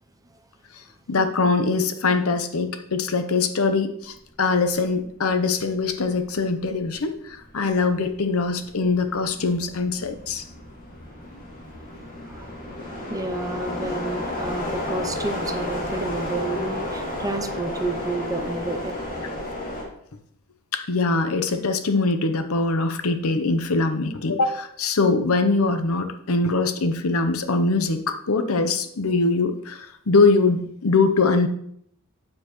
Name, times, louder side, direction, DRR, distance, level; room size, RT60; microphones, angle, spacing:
voice 1, 1.1-10.4 20.7-31.5, left 3 dB, 75° left, 8 dB, 0.8 m, -22 dB
sound 1, 4.8-5.1 5.5-19.8, left 1 dB, 40° left, 2.6 m, -32 dB
voice 2, 12.2-18.8, right 2 dB, 15° right, 7 dB, 0.6 m, -30 dB
8.7 x 7.4 x 3.1 m, 0.69 s
head